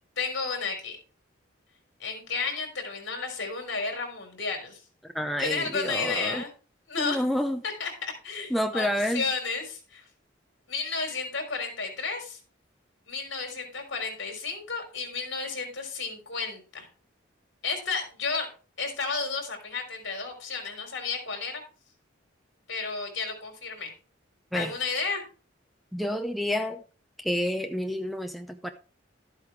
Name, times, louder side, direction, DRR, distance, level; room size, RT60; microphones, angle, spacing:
voice 1, 0.2-1.0 2.0-4.8 5.4-6.5 6.9-7.2 7.8-8.9 9.1-10.0 10.7-12.4 13.1-16.9 17.6-18.5 18.8-21.6 22.7-23.9 24.5-25.2, left 4 dB, 65° left, 3.8 m, -32 dB
voice 2, 5.0-6.4 7.0-7.6 8.5-9.2 24.5-24.7 25.9-26.8 27.2-28.7, equal, ahead, 0.6 m, -29 dB
12.5 x 8.3 x 3.3 m
head